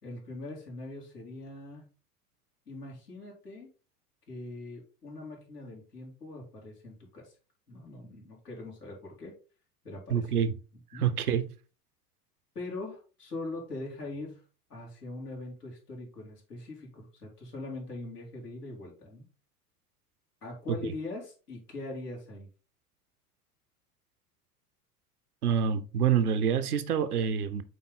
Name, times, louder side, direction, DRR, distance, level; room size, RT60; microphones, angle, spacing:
voice 1, 0.0-1.9 2.7-3.7 4.3-7.3 7.7-9.3 9.8-10.3 10.9-11.1 12.5-14.4 14.7-19.3 20.4-22.5, left 2 dB, 80° left, 3.3 m, -42 dB
voice 2, 10.1-10.5 10.9-11.5 20.7-20.8 25.4-27.6, right 8 dB, 70° right, 0.9 m, -27 dB
8.3 x 3.8 x 3.8 m
figure-of-eight pair, 80°, 46 cm